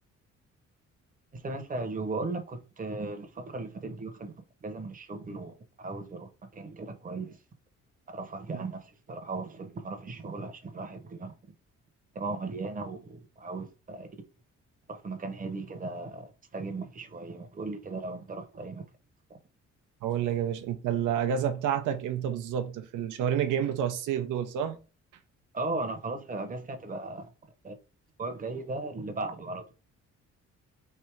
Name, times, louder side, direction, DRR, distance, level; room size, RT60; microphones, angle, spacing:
voice 1, 1.3-4.3 4.6-7.4 8.1-11.3 12.1-14.1 14.9-18.8 25.5-27.3 27.6-27.7 28.2-29.7, right 3 dB, 25° right, 0.9 m, -37 dB
voice 2, 20.0-24.8, right 9 dB, 90° right, 0.7 m, -29 dB
3.4 x 2.7 x 4.5 m
cardioid pair, 90°, 30 cm